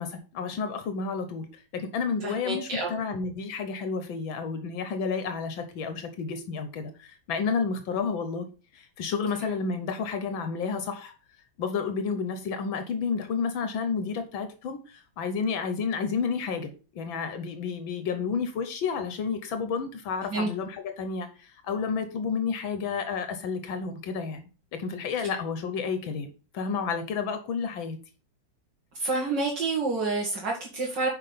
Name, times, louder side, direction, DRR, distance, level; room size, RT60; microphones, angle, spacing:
voice 1, 0.0-1.5 1.7-8.5 8.7-11.1 11.6-26.3 26.5-28.0, left 5 dB, 85° left, 8 dB, 1.7 m, -31 dB
voice 2, 2.2-2.9 20.3-20.5 29.0-31.1, right 3 dB, 65° right, -1 dB, 2.4 m, -28 dB
6.0 x 5.3 x 6.7 m, 0.36 s
omnidirectional pair, 2.1 m